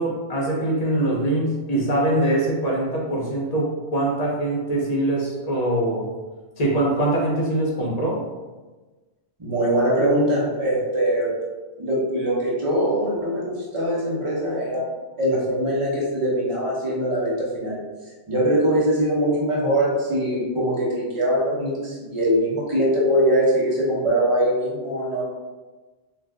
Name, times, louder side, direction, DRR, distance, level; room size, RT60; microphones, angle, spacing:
voice 1, 0.0-6.1 6.6-8.2, right 1 dB, 40° left, -3 dB, 0.7 m, -23 dB
voice 2, 9.4-11.4 11.8-14.9 15.2-17.9 18.3-25.2, equal, 30° right, -6 dB, 0.8 m, -22 dB
2.5 x 2.3 x 3.4 m, 1.2 s
omnidirectional pair, 1.2 m